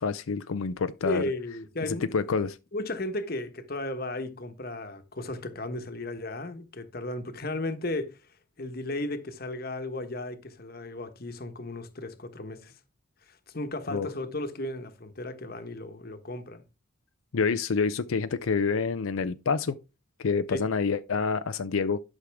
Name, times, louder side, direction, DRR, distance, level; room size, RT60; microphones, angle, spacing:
voice 1, 0.0-1.2 1.9-2.6 13.9-14.1 17.3-19.8 20.2-22.0, left 5 dB, 85° left, 0.5 m, -27 dB
voice 2, 1.0-2.1 2.7-12.8 13.2-16.6 20.5-20.6, left 2 dB, 45° left, 1.2 m, -35 dB
11.5 x 6.3 x 3.5 m
head